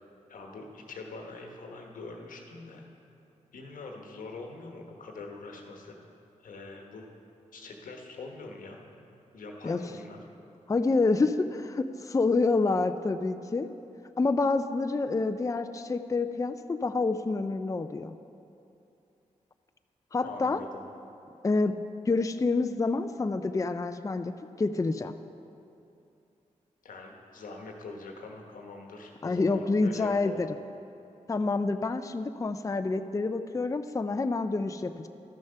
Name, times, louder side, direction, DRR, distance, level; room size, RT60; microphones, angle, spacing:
voice 1, 0.3-2.8 3.5-6.0 6.4-7.1 7.5-9.1 9.3-10.2 20.2-20.8 26.8-30.4, left 3 dB, 90° left, 1 dB, 1.1 m, -43 dB
voice 2, 10.7-13.7 14.2-18.1 20.1-20.6 21.4-21.7 22.1-24.3 24.6-25.1 29.2-30.5 31.3-35.1, left 3 dB, 25° left, 9 dB, 0.4 m, -27 dB
12.5 x 6.5 x 5.6 m, 2.7 s
cardioid pair, 50°, 14 cm